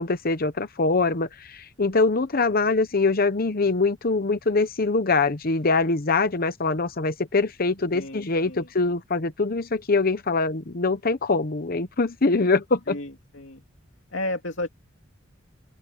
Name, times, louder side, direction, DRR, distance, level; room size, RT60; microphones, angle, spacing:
voice 1, 0.0-13.0, left 3 dB, 50° left, 0.9 m, -23 dB
voice 2, 7.9-8.7 12.9-13.6 14.1-14.7, left 1 dB, 65° left, 2.8 m, -33 dB
open air
head